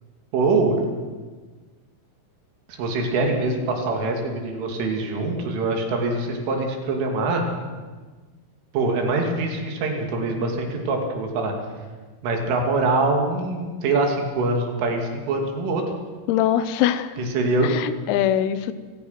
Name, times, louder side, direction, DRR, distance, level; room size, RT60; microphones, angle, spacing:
voice 1, 0.3-0.8 2.7-7.4 8.7-11.5 12.2-15.8 17.2-17.7, right 3 dB, 70° right, 2 dB, 5.1 m, -24 dB
voice 2, 16.3-17.2 17.6-18.7, left 11 dB, 90° left, 13 dB, 3.7 m, -22 dB
29.5 x 16.0 x 5.9 m, 1.4 s
omnidirectional pair, 5.9 m